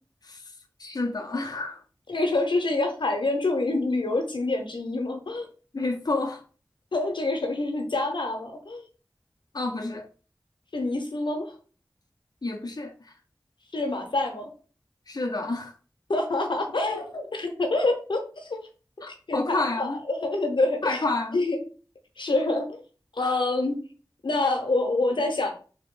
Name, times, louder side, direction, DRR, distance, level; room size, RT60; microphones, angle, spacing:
voice 1, 0.2-1.8 5.7-6.4 9.5-10.1 12.4-13.1 15.1-15.7 19.0-20.0 20.8-21.4 23.2-23.4, left 2 dB, 55° left, 0.6 m, -30 dB
voice 2, 2.1-5.5 6.9-8.9 10.7-11.5 13.7-14.5 16.1-18.6 19.1-21.0 21.3-21.6 22.2-22.8 23.1-23.8 24.2-25.5, left 2 dB, 90° left, 0.8 m, -26 dB
3.4 x 2.9 x 3.7 m
wide cardioid pair, 40°, 8 cm